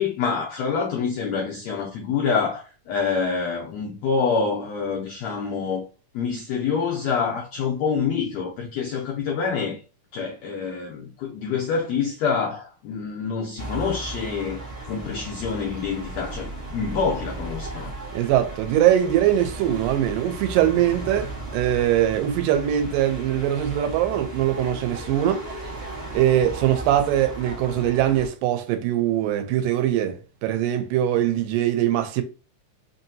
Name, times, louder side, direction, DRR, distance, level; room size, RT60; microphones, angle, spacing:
voice 1, 0.0-5.9 6.1-9.8 10.1-14.6 14.9-17.9, left 5 dB, 75° left, 1.6 m, -26 dB
sound 1, 13.6-28.3, right 2 dB, 35° right, 0.9 m, -36 dB
voice 2, 18.1-25.7 26.1-32.2, right 11 dB, 90° right, 2.3 m, -22 dB
5.0 x 2.7 x 2.7 m
omnidirectional pair, 3.8 m